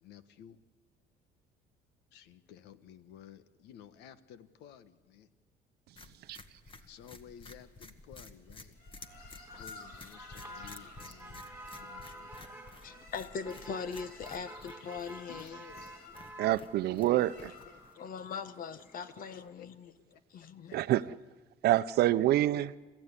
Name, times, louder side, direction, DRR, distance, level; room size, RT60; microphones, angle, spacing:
voice 1, 0.0-0.6 2.1-5.3 6.9-8.7 9.5-12.3 15.3-16.1 16.8-18.1 19.3-20.2 20.6-20.8, left 9 dB, 90° left, 1.3 m, -54 dB
sound 1, 6.0-17.9, left 3 dB, 30° left, 1.8 m, -53 dB
sound 2, 8.8-18.0, left 3 dB, 70° left, 6.8 m, -53 dB
Motor vehicle (road), 9.0-19.5, right 2 dB, 10° right, 3.3 m, -52 dB
voice 2, 12.8-15.6 18.0-19.9 20.3-20.8, left 6 dB, 55° left, 1.4 m, -41 dB
voice 3, 16.4-17.5 20.7-21.1 21.6-22.7, right 14 dB, 70° right, 0.7 m, -27 dB
30.0 x 15.0 x 9.9 m
cardioid pair, 110°, 17 cm